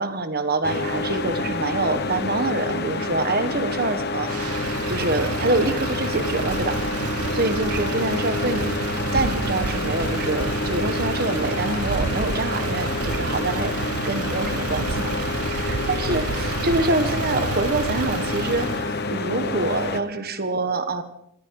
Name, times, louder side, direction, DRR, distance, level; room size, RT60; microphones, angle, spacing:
voice 1, 0.0-7.0 7.3-8.7 9.1-13.7 14.0-15.1 15.4-21.0, right 2 dB, 45° right, 9 dB, 1.5 m, -26 dB
sound 1, 0.6-20.0, left 3 dB, 45° left, 1.1 m, -28 dB
Motor vehicle (road), 4.2-18.9, right 5 dB, 85° right, 0.6 m, -30 dB
20.0 x 14.5 x 4.9 m, 0.74 s
head